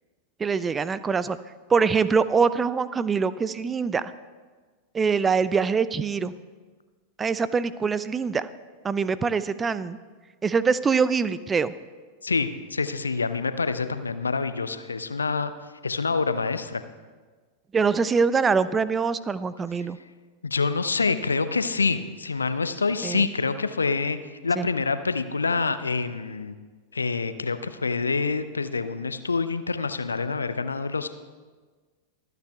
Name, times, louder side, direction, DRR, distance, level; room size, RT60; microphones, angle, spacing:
voice 1, 0.4-1.4 1.7-4.0 4.9-6.3 7.2-8.5 8.8-10.0 10.4-11.7 17.7-20.0 23.0-23.3 24.6-24.7, right 5 dB, 15° right, 16 dB, 0.4 m, -24 dB
voice 2, 12.2-15.5 15.8-16.8 20.4-24.2 24.4-26.5 26.9-31.1, left 4 dB, 75° left, 12 dB, 0.6 m, -26 dB
24.0 x 9.3 x 2.3 m, 1.4 s
figure-of-eight pair, 90°, 0 cm